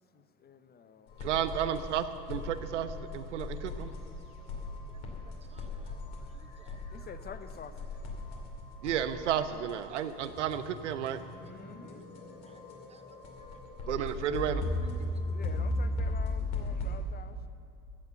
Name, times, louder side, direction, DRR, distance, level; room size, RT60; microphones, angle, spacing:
voice 1, 0.0-1.2 6.9-7.9 11.4-12.4 14.0-14.3 15.3-17.5, left 6 dB, 30° left, 11 dB, 0.7 m, -49 dB
sound 1, 1.1-17.0, left 2 dB, 70° left, 2.5 m, -37 dB
voice 2, 1.2-3.9 8.8-11.2 13.9-14.6, right 9 dB, 90° right, 11 dB, 0.7 m, -32 dB
voice 3, 4.6-7.1 8.3-8.5 8.8-8.9 9.9-10.0 11.4-11.9 12.5-12.6 12.9-13.6 14.0-14.1 15.1-15.2, right 5 dB, 20° right, 9 dB, 0.8 m, -61 dB
14.5 x 6.8 x 7.9 m, 2.6 s
hypercardioid pair, 80°, 35 cm